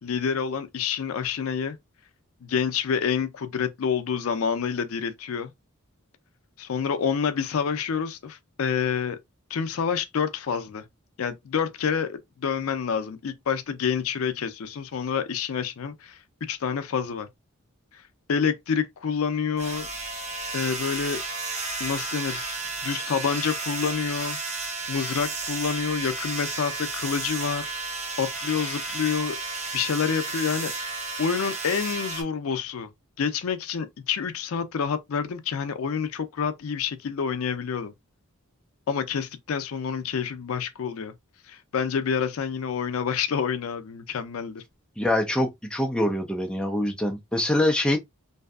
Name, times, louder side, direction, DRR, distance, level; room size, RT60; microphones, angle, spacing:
voice 1, 0.0-1.8 2.4-5.5 6.6-9.2 9.5-10.8 11.2-17.3 17.9-18.0 18.3-19.9 20.5-21.2 21.8-22.5 22.8-24.4 24.9-27.7 28.2-29.4 29.7-30.9 31.2-32.9 33.2-37.9 38.9-41.1 41.5-44.6, left 6 dB, 70° left, 0.4 m, -28 dB
sound 1, 19.6-32.2, right 3 dB, 30° right, 0.7 m, -33 dB
voice 2, 45.0-48.0, left 1 dB, 5° left, 0.4 m, -24 dB
2.6 x 2.4 x 2.3 m
head